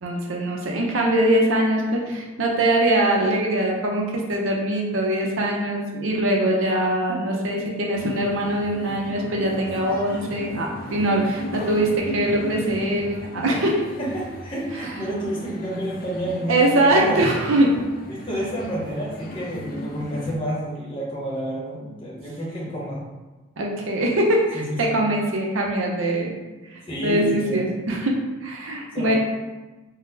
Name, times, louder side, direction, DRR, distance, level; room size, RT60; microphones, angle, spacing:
voice 1, 0.0-4.0 4.3-13.8 14.8-14.9 16.5-17.8 23.6-26.4 26.7-29.2, right 1 dB, 75° right, 0 dB, 0.6 m, -22 dB
sound 1, 7.9-20.4, left 1 dB, 45° left, 0.3 m, -36 dB
voice 2, 14.0-17.2 18.1-23.0 24.5-24.8 26.9-27.6 28.9-29.2, equal, 25° left, -6 dB, 0.8 m, -29 dB
3.8 x 2.0 x 2.7 m, 1.2 s
head